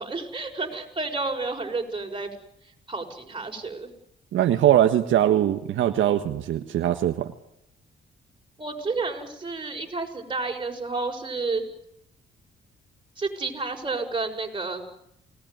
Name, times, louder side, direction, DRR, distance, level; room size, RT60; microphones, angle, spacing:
voice 1, 0.0-2.3 2.9-3.9 8.6-11.6 13.2-14.8, right 3 dB, 25° right, 3 dB, 6.1 m, -30 dB
voice 2, 4.3-7.3, right 11 dB, 75° right, 6 dB, 1.5 m, -21 dB
29.5 x 19.0 x 9.4 m, 0.80 s
cardioid pair, 90°, 20 cm